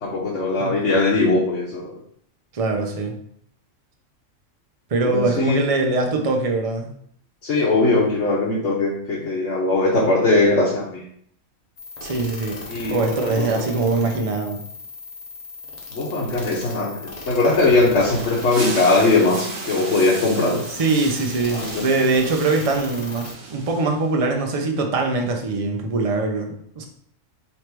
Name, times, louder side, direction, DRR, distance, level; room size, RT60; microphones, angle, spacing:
voice 1, 0.0-1.9 5.1-5.6 7.4-11.0 12.7-13.6 15.9-20.6 21.5-21.8, left 2 dB, 65° left, -4 dB, 1.1 m, -20 dB
voice 2, 2.5-3.2 4.9-6.9 12.0-12.6 12.9-14.6 20.7-26.8, right 3 dB, 40° right, 2 dB, 0.5 m, -22 dB
sound 1, 11.8-23.3, left 3 dB, 35° left, 0.8 m, -37 dB
sound 2, 18.0-24.3, right 3 dB, 85° right, 1.2 m, -35 dB
3.3 x 3.1 x 4.4 m, 0.66 s
omnidirectional pair, 1.4 m